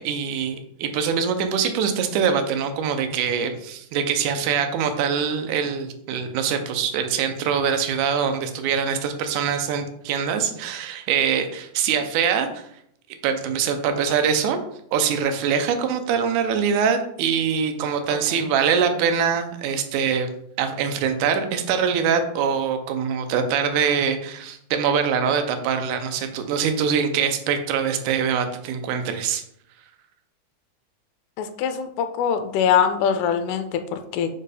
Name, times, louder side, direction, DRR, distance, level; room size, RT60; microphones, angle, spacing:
voice 1, 0.0-12.7 13.2-14.6 14.9-20.3 20.6-29.4, right 7 dB, 75° right, 7 dB, 2.2 m, -23 dB
voice 2, 31.4-34.3, left 8 dB, 80° left, 9 dB, 2.1 m, -23 dB
5.4 x 4.5 x 4.9 m, 0.72 s
omnidirectional pair, 3.7 m